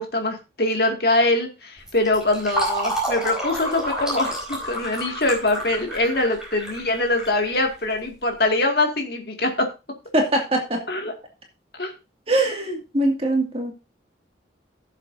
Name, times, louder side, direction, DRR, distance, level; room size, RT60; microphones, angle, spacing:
voice 1, 0.0-9.7 10.9-11.1 11.8-11.9, left 2 dB, 55° left, 3 dB, 2.2 m, -23 dB
Fill (with liquid), 1.8-8.2, right 1 dB, 5° right, 4.6 m, -30 dB
voice 2, 10.1-10.8 12.3-13.7, right 1 dB, 30° right, 1 dB, 2.3 m, -22 dB
16.5 x 7.3 x 2.7 m, 0.27 s
head